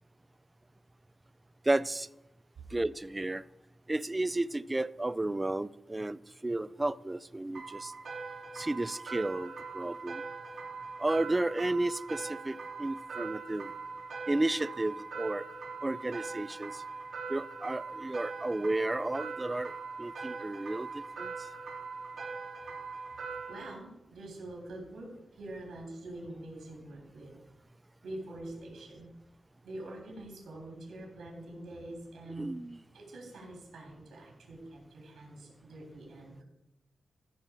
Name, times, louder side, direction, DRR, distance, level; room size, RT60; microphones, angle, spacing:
voice 1, 1.7-2.1 2.7-3.4 3.9-7.9 8.5-10.2 11.0-13.7 14.3-15.5 15.8-16.8 17.3-19.7 20.0-21.3 32.4-32.8, right 2 dB, 20° right, 18 dB, 0.3 m, -32 dB
sound 1, 7.5-23.7, right 4 dB, 65° right, 4.2 m, -42 dB
voice 2, 23.5-27.3 28.0-29.1 29.6-32.5 32.9-36.4, right 1 dB, 90° right, -1 dB, 3.2 m, -45 dB
14.0 x 6.0 x 4.8 m, 0.96 s
cardioid pair, 90°, 0 cm